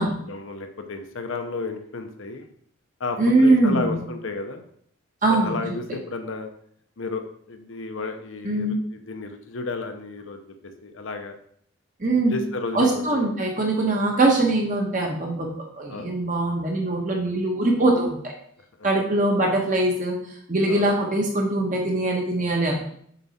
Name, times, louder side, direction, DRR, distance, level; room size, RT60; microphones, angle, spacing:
voice 1, 0.0-2.5 3.0-4.6 5.3-6.5 7.0-10.6 10.8-11.4 12.2-13.3 15.9-16.1 20.7-20.9, left 3 dB, 70° left, 6 dB, 0.8 m, -32 dB
voice 2, 3.2-4.0 5.2-5.6 8.4-8.8 12.0-12.4 12.7-15.5 15.8-18.2 18.8-20.2 20.5-22.8, right 2 dB, 40° right, -1 dB, 1.1 m, -22 dB
6.9 x 4.6 x 4.3 m, 0.64 s
head